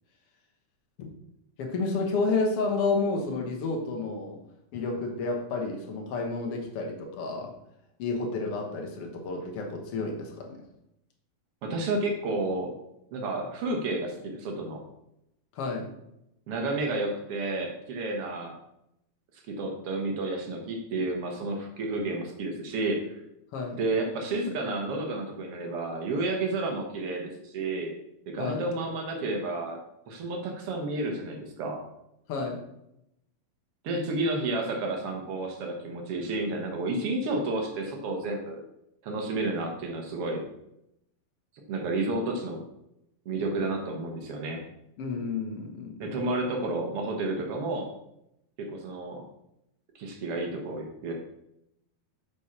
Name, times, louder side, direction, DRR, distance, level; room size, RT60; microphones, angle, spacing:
voice 1, 1.6-4.4 4.7-7.6 8.0-10.6 15.5-15.9 23.5-23.8 28.4-28.6 32.3-32.6 45.0-46.1, left 3 dB, 70° left, 2 dB, 1.4 m, -30 dB
voice 2, 11.6-12.7 13.1-14.8 16.5-18.6 19.5-23.2 23.8-27.9 28.3-29.8 30.1-31.8 33.8-38.6 39.0-40.4 41.7-42.6 43.2-44.6 46.0-47.9 48.6-49.2 49.9-51.1, right 2 dB, 70° right, 2 dB, 1.4 m, -31 dB
6.9 x 5.0 x 5.8 m, 0.82 s
omnidirectional pair, 4.3 m